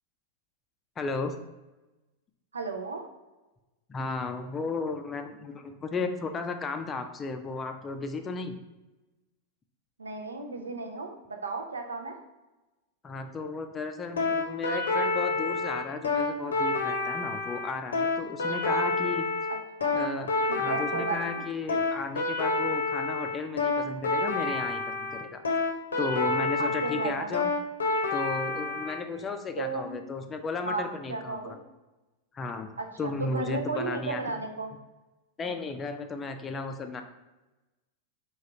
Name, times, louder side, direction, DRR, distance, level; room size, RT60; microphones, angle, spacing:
voice 1, 1.0-1.4 3.9-8.5 13.0-19.3 19.9-25.4 26.0-27.5 28.1-31.5 32.3-32.7 33.0-34.2 35.4-37.0, left 4 dB, 20° left, 6 dB, 0.4 m, -34 dB
voice 2, 2.5-3.0 10.0-12.2 19.8-20.0 20.5-21.4 26.6-27.3 29.6-30.0 30.6-31.5 32.8-34.7, right 3 dB, 75° right, 4 dB, 0.5 m, -34 dB
sound 1, 14.2-29.0, left 3 dB, 70° left, 0.7 m, -28 dB
3.7 x 2.3 x 4.3 m, 1.1 s
figure-of-eight pair, 90°, 0 cm